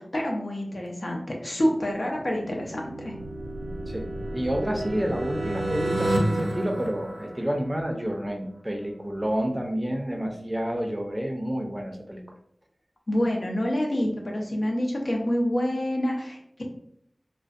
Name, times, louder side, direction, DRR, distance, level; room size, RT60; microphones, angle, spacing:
voice 1, 0.0-3.1 13.1-16.6, equal, 65° left, 0 dB, 0.5 m, -27 dB
sound 1, 2.0-7.9, right 1 dB, 85° right, 0.5 m, -30 dB
sound 2, 3.2-8.1, equal, 40° left, 0.8 m, -41 dB
voice 2, 4.3-12.2, equal, 20° right, 2 dB, 0.5 m, -29 dB
2.5 x 2.1 x 2.4 m, 0.69 s
wide cardioid pair, 45°, 0 cm